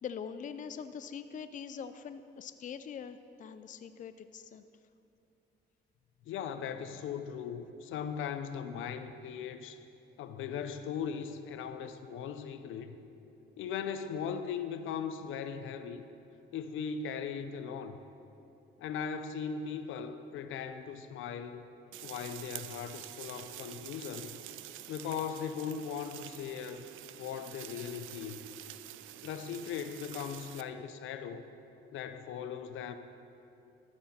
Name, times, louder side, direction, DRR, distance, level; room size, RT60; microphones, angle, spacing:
voice 1, 0.0-4.7, left 7 dB, 40° left, 11 dB, 0.5 m, -43 dB
voice 2, 6.3-9.8 10.2-13.0 13.6-16.0 16.5-18.0 18.8-21.7 22.0-24.4 24.9-26.9 27.2-28.4 29.2-31.4 31.9-32.9, left 7 dB, 85° left, 10 dB, 0.6 m, -38 dB
sound 1, 21.9-30.6, right 13 dB, 85° right, 0.4 m, -47 dB
12.5 x 9.6 x 4.3 m, 2.9 s
cardioid pair, 90°, 20 cm